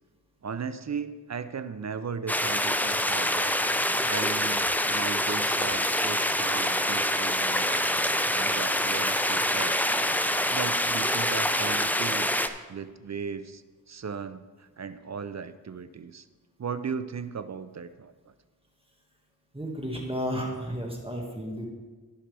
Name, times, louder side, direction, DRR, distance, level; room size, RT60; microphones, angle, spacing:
voice 1, 0.4-3.6 4.1-7.8 8.3-9.9 10.5-12.3 12.7-16.3 16.6-18.3, right 6 dB, 45° right, 12 dB, 0.6 m, -37 dB
sound 1, 2.3-12.5, left 1 dB, 5° left, 0.6 m, -26 dB
voice 2, 19.5-21.6, equal, 15° right, -1 dB, 1.9 m, -32 dB
16.0 x 5.6 x 3.4 m, 1.3 s
cardioid pair, 45°, 37 cm